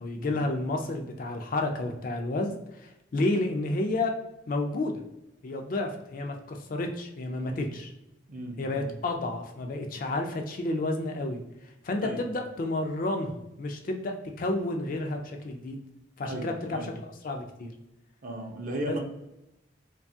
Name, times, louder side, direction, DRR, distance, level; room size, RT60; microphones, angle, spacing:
voice 1, 0.0-4.1 4.5-5.0 5.4-7.9 8.6-11.4 11.8-15.8 16.2-17.7 18.9-19.0, left 2 dB, 45° left, 4 dB, 0.3 m, -31 dB
voice 2, 8.3-8.9 12.0-12.2 16.3-17.0 18.2-19.0, right 1 dB, 45° right, 1 dB, 0.5 m, -36 dB
2.7 x 2.3 x 2.6 m, 0.88 s
head